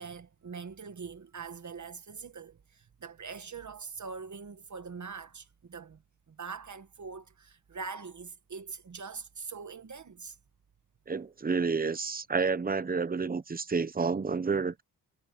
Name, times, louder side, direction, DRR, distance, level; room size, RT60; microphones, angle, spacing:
voice 1, 0.0-6.0 6.3-10.4, right 5 dB, 45° right, 1.5 m, -43 dB
voice 2, 11.1-14.8, right 5 dB, 20° right, 0.8 m, -30 dB
wide cardioid pair, 120°, 41 cm